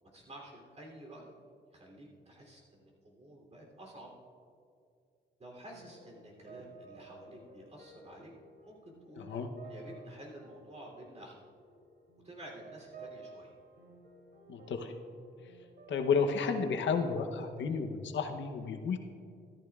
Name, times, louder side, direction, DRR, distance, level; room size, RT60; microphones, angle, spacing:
voice 1, 0.0-1.3 1.7-4.1 5.4-8.3 8.6-9.3 9.7-11.5 12.2-13.5, right 1 dB, 35° right, -2 dB, 3.1 m, -51 dB
sound 1, 5.5-17.6, right 4 dB, 65° right, 3.0 m, -55 dB
voice 2, 9.2-9.5 14.5-14.9 15.9-19.0, left 5 dB, 85° left, 6 dB, 0.9 m, -32 dB
14.0 x 13.5 x 2.4 m, 2.4 s
wide cardioid pair, 120°, 19 cm